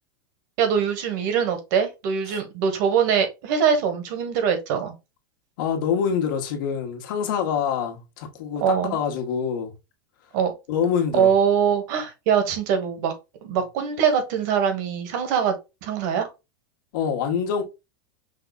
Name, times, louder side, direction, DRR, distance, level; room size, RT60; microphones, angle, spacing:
voice 1, 0.6-4.9 8.6-9.0 10.3-10.5 11.1-13.1 13.4-15.5 15.8-16.3, right 7 dB, 55° right, 1.4 m, -22 dB
voice 2, 5.6-9.7 10.7-11.3 16.9-17.6, left 7 dB, 60° left, 1.4 m, -25 dB
5.6 x 2.3 x 4.0 m
supercardioid pair, 155°, 12 cm